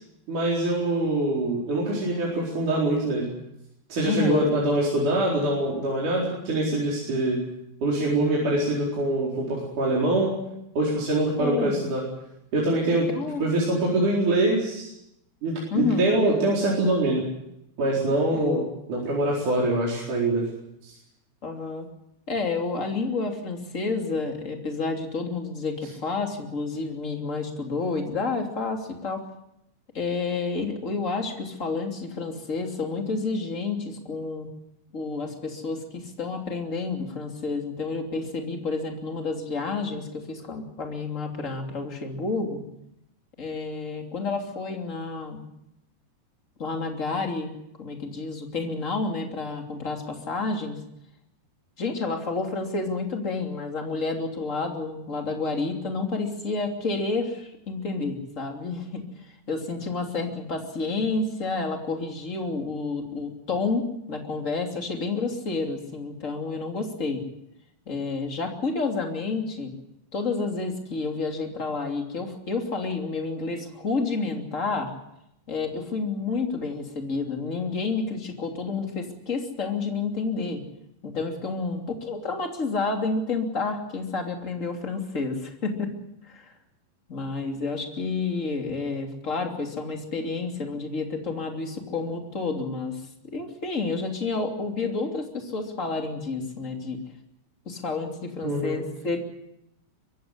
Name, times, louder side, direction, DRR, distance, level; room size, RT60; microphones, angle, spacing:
voice 1, 0.3-3.3 3.9-7.4 7.8-10.3 10.8-12.0 12.5-13.1 13.4-14.9 15.4-17.2 17.8-18.6 18.9-20.4 20.8-20.9 98.4-98.7, right 2 dB, 50° right, -4 dB, 5.7 m, -24 dB
voice 2, 4.0-4.5 11.4-11.8 13.1-13.4 15.7-16.1 18.3-18.7 21.4-21.9 22.3-29.2 29.9-34.5 34.9-42.6 43.4-45.4 46.6-47.5 47.8-50.8 51.8-67.2 67.9-69.7 70.1-74.9 75.5-80.6 81.0-85.9 86.2-86.5 87.1-93.0 93.3-97.0 97.6-99.2, left 3 dB, 20° left, 3 dB, 2.7 m, -30 dB
23.5 x 16.0 x 9.8 m, 0.83 s
omnidirectional pair, 4.8 m